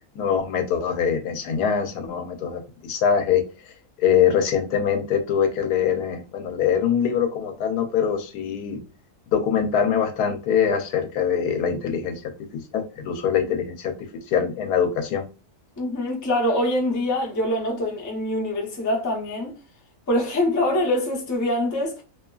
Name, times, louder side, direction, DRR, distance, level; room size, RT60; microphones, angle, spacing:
voice 1, 0.2-3.4 4.0-8.8 9.3-12.3 12.7-13.9 14.3-15.3, left 7 dB, 85° left, 1.1 m, -23 dB
voice 2, 15.8-19.6 20.1-22.0, left 1 dB, 25° left, 0.4 m, -24 dB
2.8 x 2.3 x 2.3 m
omnidirectional pair, 1.6 m